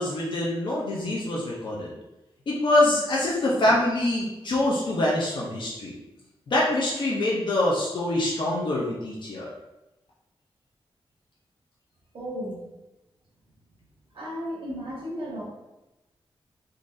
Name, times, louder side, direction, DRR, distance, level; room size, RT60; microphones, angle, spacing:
voice 1, 0.0-1.9 2.5-5.9 6.5-9.5, left 1 dB, 55° left, -5 dB, 0.6 m, -25 dB
voice 2, 12.1-12.7 14.1-15.4, equal, 75° right, -6 dB, 1.3 m, -34 dB
3.8 x 2.5 x 2.5 m, 0.99 s
wide cardioid pair, 145°, 9 cm